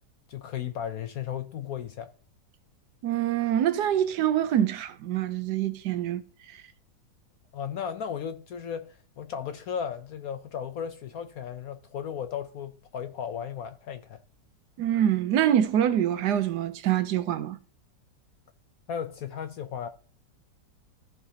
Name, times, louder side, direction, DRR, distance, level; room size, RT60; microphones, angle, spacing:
voice 1, 0.3-2.1 7.5-14.2 18.9-19.9, left 8 dB, 70° left, 0.9 m, -35 dB
voice 2, 3.0-6.2 14.8-17.6, right 10 dB, 70° right, 1.2 m, -25 dB
14.5 x 5.8 x 2.8 m
omnidirectional pair, 1.9 m